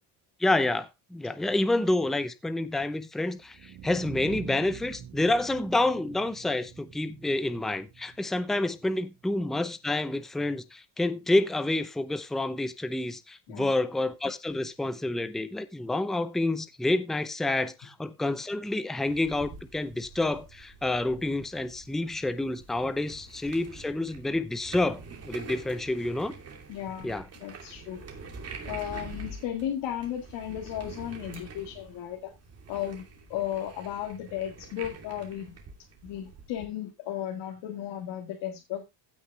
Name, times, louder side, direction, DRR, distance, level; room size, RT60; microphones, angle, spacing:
voice 1, 0.4-26.3 27.0-27.3, left 2 dB, ahead, 0.6 m, -28 dB
sound 1, 3.4-9.4, right 10 dB, 70° right, 4.6 m, -45 dB
sound 2, 19.1-36.7, right 4 dB, 35° right, 2.8 m, -46 dB
voice 2, 26.7-28.0 28.6-32.3 32.7-35.6 36.0-38.8, left 11 dB, 70° left, 2.0 m, -35 dB
15.5 x 6.4 x 3.3 m
cardioid pair, 150°, 44 cm